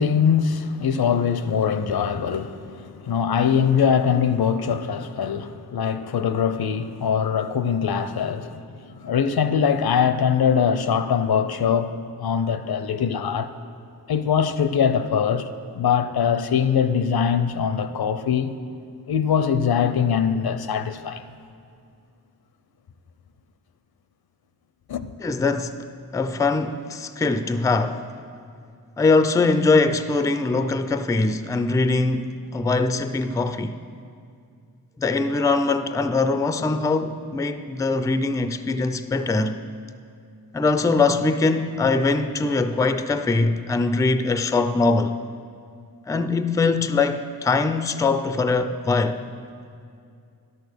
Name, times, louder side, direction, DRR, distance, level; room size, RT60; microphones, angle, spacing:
voice 1, 0.0-13.5 14.1-15.5 15.7-18.5 19.1-21.2 24.9-25.0, left 7 dB, 80° left, 0.6 m, -22 dB
voice 2, 25.2-25.8 26.1-28.0 29.0-33.8 35.0-39.6 40.5-45.2 46.1-49.2, left 3 dB, 10° left, 0.3 m, -22 dB
11.0 x 6.5 x 6.6 m
wide cardioid pair, 115°, 37 cm